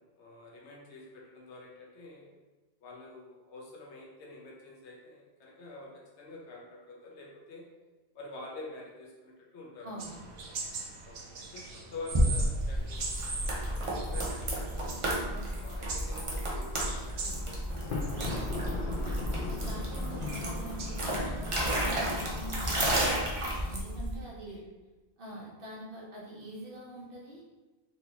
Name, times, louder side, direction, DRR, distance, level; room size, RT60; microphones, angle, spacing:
voice 1, 0.0-2.3 2.8-5.9 6.2-7.6 8.1-9.9 11.0-14.9 15.6-18.2 24.1-24.6 25.3-25.5, left 2 dB, 80° left, -3 dB, 1.0 m, -48 dB
sound 1, 10.0-21.6, right 3 dB, 85° right, 1.0 m, -43 dB
sound 2, 12.1-24.1, equal, 35° right, 0.7 m, -32 dB
Thunder, 17.7-21.8, left 3 dB, 60° left, 0.7 m, -39 dB
voice 2, 19.6-24.6 25.2-27.4, right 1 dB, 55° right, -4 dB, 1.0 m, -45 dB
4.1 x 2.7 x 2.8 m, 1.2 s
omnidirectional pair, 1.1 m